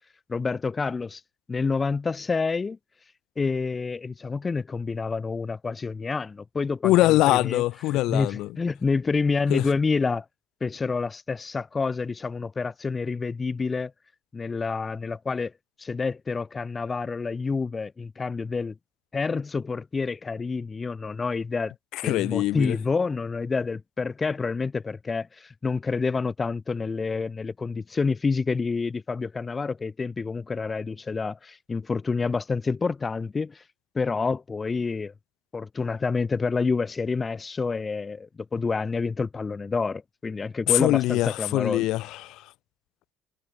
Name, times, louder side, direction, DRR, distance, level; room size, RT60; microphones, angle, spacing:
voice 1, 0.3-1.2 1.5-2.8 3.4-6.9 7.3-7.6 7.9-10.2 10.6-13.9 14.3-15.5 15.8-18.7 19.1-21.7 22.0-33.6 33.9-35.1 35.5-41.8, left 4 dB, 20° left, 0.9 m, -28 dB
voice 2, 6.8-8.5 9.5-9.7 21.9-22.8 40.7-42.5, left 17 dB, 65° left, 1.6 m, -23 dB
cardioid pair, 150°, 0 cm